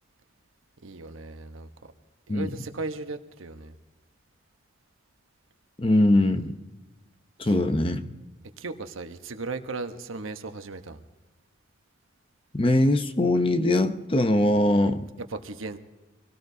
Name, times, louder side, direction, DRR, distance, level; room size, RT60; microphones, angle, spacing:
voice 1, 0.8-1.7 2.3-3.8 6.0-6.2 7.4-7.5 8.6-11.0 15.3-15.8, right 3 dB, 85° right, 8 dB, 1.1 m, -36 dB
voice 2, 5.8-6.6 7.4-8.1 12.5-15.1, left 1 dB, 25° left, 9 dB, 0.7 m, -22 dB
24.5 x 17.5 x 2.8 m, 1.1 s
head